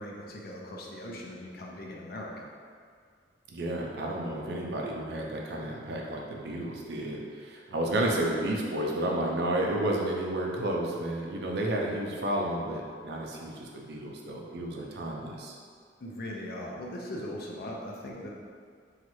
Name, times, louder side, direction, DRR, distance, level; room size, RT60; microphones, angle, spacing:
voice 1, 0.0-2.4 16.0-18.3, left 1 dB, 60° left, -2 dB, 0.5 m, -39 dB
voice 2, 3.5-15.6, right 1 dB, 70° right, -1 dB, 0.5 m, -31 dB
3.0 x 2.4 x 3.0 m, 2.1 s
head